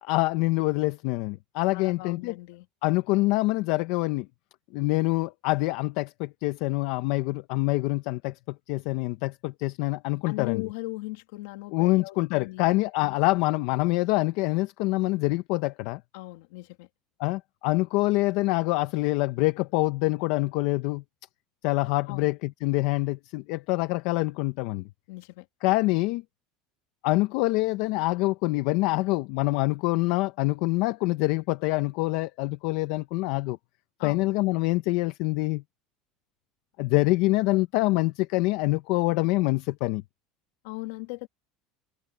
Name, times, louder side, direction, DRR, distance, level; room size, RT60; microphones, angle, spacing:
voice 1, 0.0-2.3 2.8-4.3 4.7-10.6 11.7-16.0 17.2-21.0 21.6-24.8 25.6-26.2 27.0-33.6 34.0-35.6 36.8-40.0, left 21 dB, 60° left, 0.7 m, -25 dB
voice 2, 1.7-2.7 10.3-13.2 16.1-16.9 22.1-22.3 25.1-25.5 34.0-34.3 40.6-41.3, left 22 dB, 75° left, 2.3 m, -38 dB
cardioid pair, 165°, 0 cm